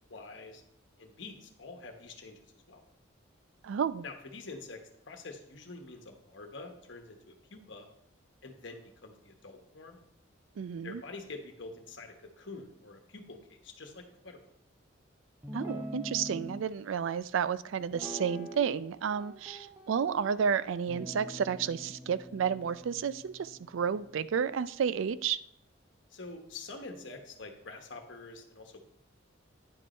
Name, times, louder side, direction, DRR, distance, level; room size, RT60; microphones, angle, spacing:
voice 1, 0.1-0.6 1.0-2.4 2.7-2.8 4.0-4.8 5.0-7.9 8.4-10.0 10.8-14.4 26.1-28.8, left 3 dB, 65° left, 4 dB, 1.2 m, -46 dB
voice 2, 3.6-4.0 10.6-11.0 15.5-25.4, right 7 dB, 75° right, 16 dB, 0.4 m, -31 dB
Guitar, 15.4-16.6 17.9-18.8 19.1-20.3 20.9-24.3, equal, 10° right, 0.8 m, -44 dB
9.7 x 5.3 x 4.3 m, 0.73 s
head